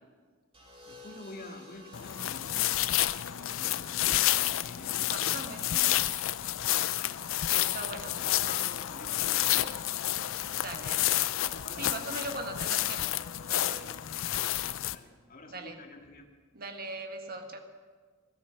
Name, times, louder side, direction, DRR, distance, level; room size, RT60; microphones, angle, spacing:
sound 1, 0.5-8.7 9.9-10.3, left 1 dB, 25° right, 2.9 m, -56 dB
voice 1, 0.8-6.7 6.9-7.2 7.5-9.8 10.1-10.9 11.4-11.9 14.2-14.5 14.9-16.3, left 2 dB, 45° left, 2 dB, 2.0 m, -50 dB
sound 2, 1.9-14.9, left 13 dB, 75° left, 0.5 m, -30 dB
voice 2, 5.1-6.0 7.4-8.1 10.6-11.1 11.8-14.1 15.5-15.8 16.5-17.6, right 2 dB, 50° right, 5 dB, 1.6 m, -41 dB
17.0 x 12.5 x 6.5 m, 1.5 s
head